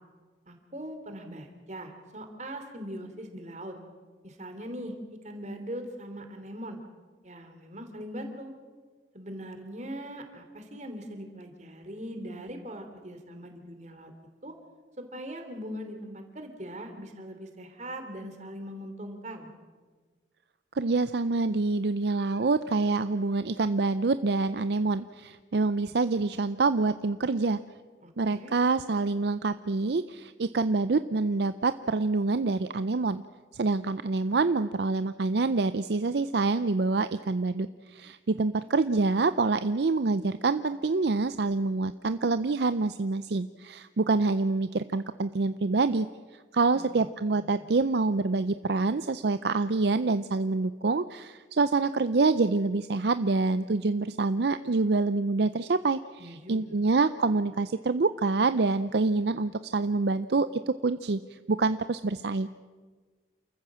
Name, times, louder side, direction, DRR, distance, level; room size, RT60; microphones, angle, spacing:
voice 1, 0.5-3.8 4.2-6.8 7.2-8.5 9.1-14.1 14.4-14.5 15.0-19.5 28.0-28.5 46.7-47.0 47.3-47.6 56.2-56.7, equal, 40° right, 6 dB, 2.9 m, -41 dB
voice 2, 20.7-27.6 28.2-33.2 33.5-46.1 46.5-61.2 61.5-62.5, right 3 dB, 65° right, 12 dB, 0.5 m, -26 dB
28.5 x 14.5 x 7.5 m, 1.5 s
head